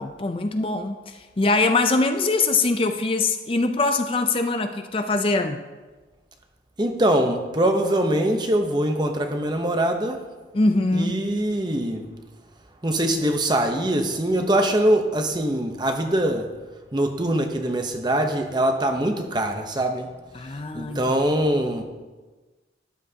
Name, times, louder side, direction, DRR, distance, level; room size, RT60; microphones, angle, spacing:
voice 1, 0.0-5.6 10.5-11.2 20.3-21.0, left 3 dB, 30° left, 7 dB, 0.5 m, -23 dB
voice 2, 6.8-10.2 10.9-12.1 12.8-16.5 16.9-20.1 20.7-21.8, right 1 dB, 25° right, 5 dB, 0.8 m, -23 dB
13.0 x 11.5 x 2.8 m, 1.3 s
head